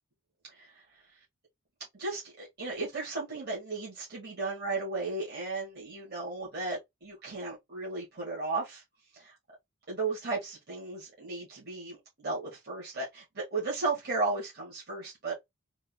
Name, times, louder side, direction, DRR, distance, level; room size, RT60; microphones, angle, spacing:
voice 1, 1.9-8.8 9.1-9.3 9.9-15.3, right 3 dB, 45° right, 2.1 m, -35 dB
3.8 x 3.2 x 3.2 m
head